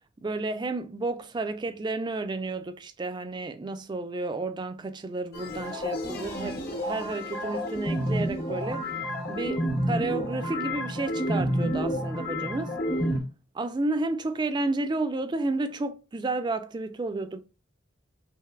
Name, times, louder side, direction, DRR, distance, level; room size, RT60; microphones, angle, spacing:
voice 1, 0.2-12.7 13.5-17.4, right 2 dB, 25° right, 0.3 m, -31 dB
sound 1, 5.3-13.2, equal, 55° left, 0.9 m, -30 dB
3.2 x 2.8 x 2.3 m
head